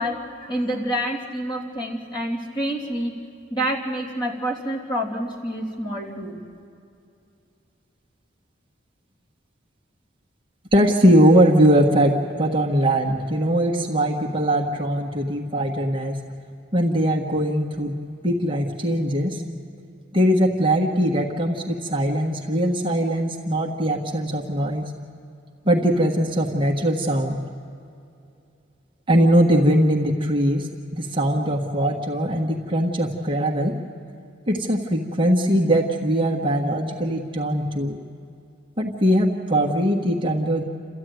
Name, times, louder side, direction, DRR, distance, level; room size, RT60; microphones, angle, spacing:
voice 1, 0.0-3.1 3.5-6.4, equal, 25° left, -3 dB, 3.1 m, -27 dB
voice 2, 10.7-16.2 16.7-19.4 20.1-24.9 25.6-27.4 29.1-33.7 34.5-38.0 38.8-40.6, equal, 25° right, 0 dB, 1.4 m, -21 dB
28.5 x 14.0 x 9.3 m, 2.6 s
head